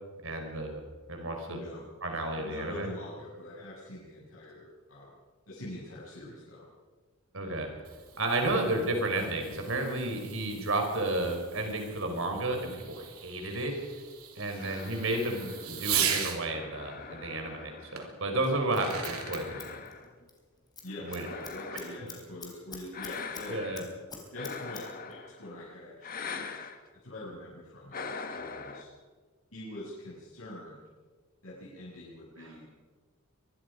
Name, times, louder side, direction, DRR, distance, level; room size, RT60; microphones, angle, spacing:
voice 1, 0.2-0.8 1.1-1.6 2.0-2.9 7.3-7.7 8.2-13.7 14.4-19.8 21.0-21.3 21.7-21.8 23.5-23.8 32.4-32.5, right 2 dB, 60° right, 3 dB, 4.9 m, -32 dB
voice 2, 1.5-1.9 2.3-5.1 5.5-6.7 15.6-15.9 20.8-23.6 24.3-26.4 27.0-28.0 28.4-28.9 29.5-30.8 31.4-32.6, left 1 dB, 70° left, -8 dB, 7.1 m, -44 dB
Fireworks, 7.6-16.4 18.0-18.1 18.6-19.4, right 8 dB, 85° right, 3.2 m, -38 dB
sound 1, 14.6-18.3 18.8-20.3 20.9-22.2 22.9-24.0 24.3-25.5 26.0-26.8 27.9-28.8, left 5 dB, 40° left, 1.6 m, -43 dB
Scissors, 18.4-20.4 20.7-20.9 21.1-23.5 23.7-24.8 25.1-25.2, left 5 dB, 20° left, 3.7 m, -45 dB
24.0 x 21.5 x 5.2 m, 1.4 s
head